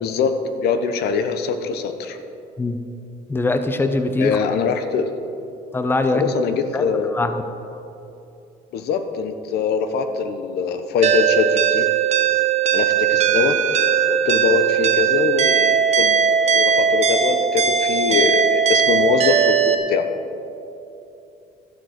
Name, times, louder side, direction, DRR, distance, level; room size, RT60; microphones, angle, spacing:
voice 1, 0.0-2.2 4.2-5.1 6.1-7.2 8.7-11.9 12.7-20.1, left 6 dB, 75° left, 8 dB, 1.0 m, -23 dB
voice 2, 3.3-4.4 5.7-6.2 6.7-7.4, left 2 dB, 15° left, 8 dB, 0.7 m, -22 dB
sound 1, 11.0-19.8, right 7 dB, 40° right, 0.9 m, -18 dB
12.5 x 7.9 x 6.5 m, 2.7 s
cardioid pair, 110°, 17 cm